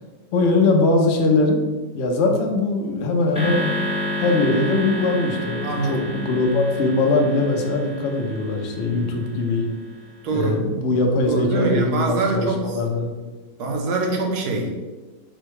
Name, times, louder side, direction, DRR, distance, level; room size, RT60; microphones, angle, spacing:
voice 1, 0.3-1.6 1.9-3.7 4.2-9.7 10.3-13.1, left 2 dB, 65° left, 2 dB, 0.6 m, -21 dB
sound 1, 3.3-9.7, left 1 dB, 5° right, 0.6 m, -30 dB
voice 2, 5.6-6.0 10.2-10.6 11.3-12.8 13.6-14.8, right 3 dB, 65° right, 1 dB, 1.2 m, -24 dB
5.0 x 2.2 x 4.6 m, 1.2 s
omnidirectional pair, 1.9 m